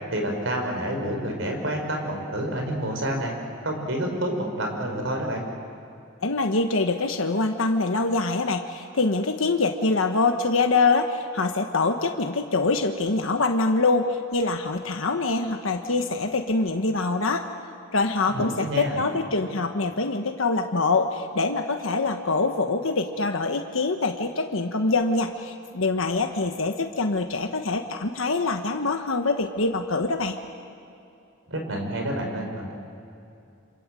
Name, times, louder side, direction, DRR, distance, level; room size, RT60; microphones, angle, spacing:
voice 1, 0.1-3.3 3.6-5.4 18.3-19.0 31.5-32.7, right 1 dB, 70° right, 2 dB, 5.2 m, -28 dB
voice 2, 6.2-17.5 17.9-30.3, left 3 dB, 80° left, 5 dB, 1.3 m, -24 dB
28.0 x 27.0 x 7.7 m, 2.7 s
head